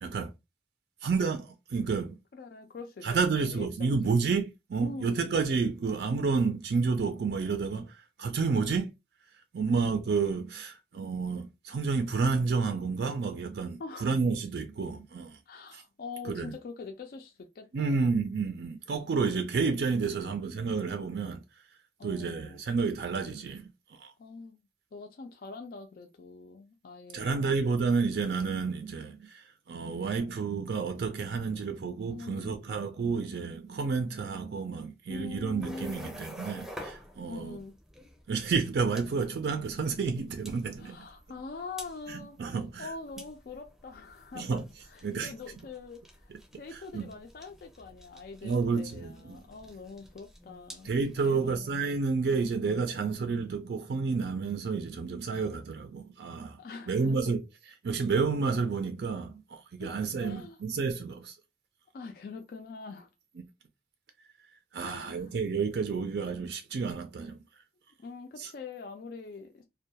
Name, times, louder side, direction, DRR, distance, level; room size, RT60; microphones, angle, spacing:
voice 1, 0.0-0.3 1.0-2.2 3.0-8.9 9.5-15.4 15.7-15.8 16.2-16.5 17.7-21.4 22.0-24.1 27.1-37.6 38.3-41.0 42.1-42.9 44.4-44.6 45.0-45.3 46.7-47.1 48.4-49.4 50.8-56.6 56.9-57.4 57.7-61.4 64.7-67.4 68.4-68.5, right 4 dB, 65° right, 0.4 m, -30 dB
voice 2, 2.3-4.2 4.8-5.3 8.5-8.9 13.8-14.1 15.5-18.1 20.2-20.4 22.0-22.6 24.2-24.6 24.9-28.0 32.1-32.6 35.1-36.1 37.3-37.8 40.8-42.4 42.8-44.6 44.9-50.9 51.2-51.7 56.6-57.2 59.8-60.6 61.9-63.1 64.8-65.3 68.0-69.6, left 4 dB, 55° left, 0.3 m, -44 dB
sound 1, 35.3-51.5, equal, ahead, 0.6 m, -49 dB
2.2 x 2.2 x 2.7 m
head